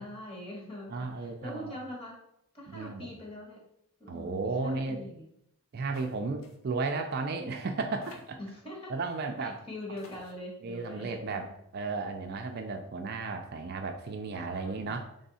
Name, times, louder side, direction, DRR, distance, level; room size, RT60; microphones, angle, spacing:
voice 1, 0.0-2.1 2.5-3.6 4.0-5.3 8.4-8.9 9.4-11.5 14.4-15.0, left 1 dB, 25° left, -2 dB, 1.3 m, -43 dB
voice 2, 0.9-1.7 2.7-3.1 4.1-5.0 5.7-8.4 8.9-9.6 10.6-15.1, right 3 dB, 45° right, 5 dB, 0.4 m, -34 dB
sound 1, 5.9-6.2 6.4-6.6 7.5-7.6 8.0-8.5 9.5-9.6 10.0-10.3, left 2 dB, 60° left, 0.7 m, -50 dB
3.5 x 3.5 x 4.1 m, 0.77 s
head